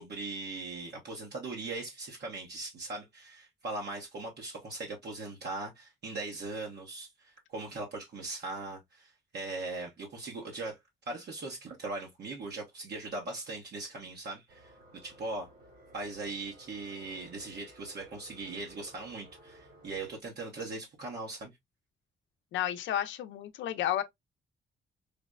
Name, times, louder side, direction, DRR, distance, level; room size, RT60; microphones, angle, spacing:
voice 1, 0.0-10.8 11.1-14.7 15.0-15.5 15.9-21.5, right 3 dB, 55° right, 0.9 m, -40 dB
sound 1, 14.5-20.1, right 1 dB, 75° right, 2.7 m, -56 dB
voice 2, 22.5-24.0, left 11 dB, 70° left, 0.6 m, -31 dB
5.0 x 2.0 x 2.3 m
cardioid pair, 90°, 20 cm